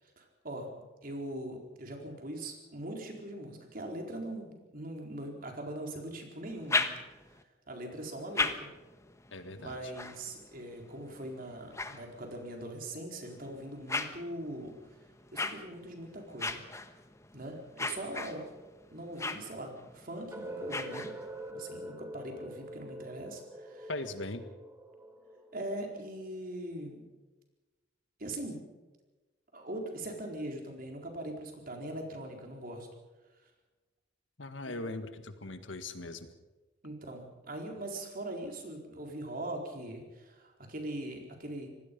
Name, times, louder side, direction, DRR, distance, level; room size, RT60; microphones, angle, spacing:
voice 1, 0.2-0.7 1.0-6.9 7.3-7.4 7.7-8.7 9.6-14.7 15.3-16.6 17.3-18.5 18.9-21.1 21.5-23.9 25.5-27.0 28.2-28.7 29.5-32.9 34.7-34.8 36.8-41.7, right 1 dB, 50° right, 2 dB, 4.2 m, -41 dB
sound 1, 6.4-7.4 8.0-12.6 13.2-21.5, left 3 dB, 15° left, 1.2 m, -39 dB
voice 2, 9.3-9.9 23.9-24.5 34.4-36.3, left 2 dB, 80° left, 9 dB, 1.8 m, -40 dB
sound 2, 20.3-26.2, right 1 dB, 15° right, 1.6 m, -45 dB
26.0 x 19.0 x 5.4 m, 1.2 s
head